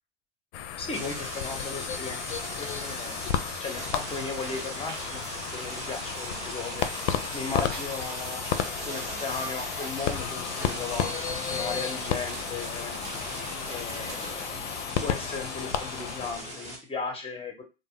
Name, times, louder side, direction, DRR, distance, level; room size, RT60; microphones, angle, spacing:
sound 1, 0.5-16.6, left 9 dB, 70° left, 0.5 m, -33 dB
voice 1, 0.8-3.2 3.6-5.2 5.5-11.1 11.5-12.9 13.7-14.7 15.0-17.6, left 4 dB, 15° left, 2 dB, 0.8 m, -36 dB
sound 2, 0.9-16.8, right 1 dB, 20° right, 0.8 m, -39 dB
sound 3, 3.6-14.5, right 5 dB, 50° right, 0.7 m, -46 dB
2.1 x 2.0 x 3.6 m, 0.29 s
hypercardioid pair, 95°, 36 cm